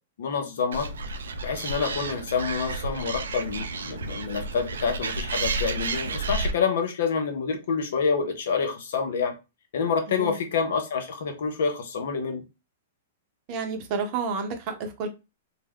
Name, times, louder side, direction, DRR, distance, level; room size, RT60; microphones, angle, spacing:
voice 1, 0.2-0.9 1.4-9.3 9.7-12.4, left 5 dB, 65° left, 5 dB, 0.6 m, -27 dB
Animal, 0.7-6.5, right 3 dB, 80° right, 0.3 m, -31 dB
voice 2, 10.1-10.4 13.5-15.1, right 4 dB, 45° right, 5 dB, 0.7 m, -30 dB
2.2 x 2.1 x 3.3 m, 0.27 s
hypercardioid pair, 115°, 0 cm